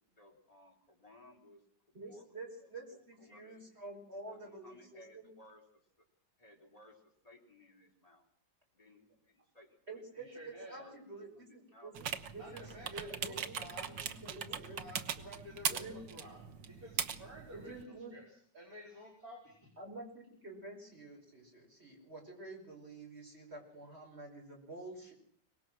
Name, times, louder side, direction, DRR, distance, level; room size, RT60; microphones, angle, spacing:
voice 1, 0.1-3.6 4.3-6.1 6.4-8.2 8.7-10.0 10.3-11.9, left 1 dB, 20° left, -1 dB, 4.2 m, -61 dB
voice 2, 1.9-4.8 5.1-5.3 9.9-14.8 15.7-16.0 17.5-18.1 19.8-25.1, right 2 dB, 35° right, 0 dB, 5.7 m, -49 dB
voice 3, 10.2-10.8 12.4-13.9 14.4-19.7, left 1 dB, 55° right, -3 dB, 4.9 m, -52 dB
sound 1, 11.9-17.8, right 8 dB, 90° right, 1.8 m, -40 dB
24.0 x 19.5 x 6.3 m, 0.64 s
omnidirectional pair, 1.9 m